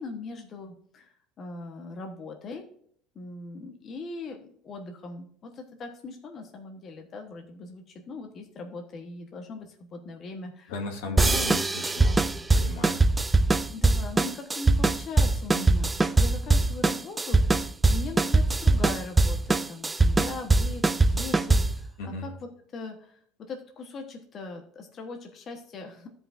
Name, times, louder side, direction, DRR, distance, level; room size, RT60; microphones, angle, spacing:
voice 1, 0.0-2.6 3.1-10.7 11.0-11.6 13.7-22.3 22.7-23.2 23.5-26.1, left 3 dB, 35° left, 3 dB, 1.1 m, -40 dB
voice 2, 10.7-13.0 22.0-22.3, left 2 dB, 85° left, 1 dB, 2.1 m, -36 dB
sound 1, 11.2-21.8, right 3 dB, 15° right, 0.4 m, -22 dB
14.5 x 5.4 x 2.5 m, 0.63 s
cardioid pair, 135°, 0 cm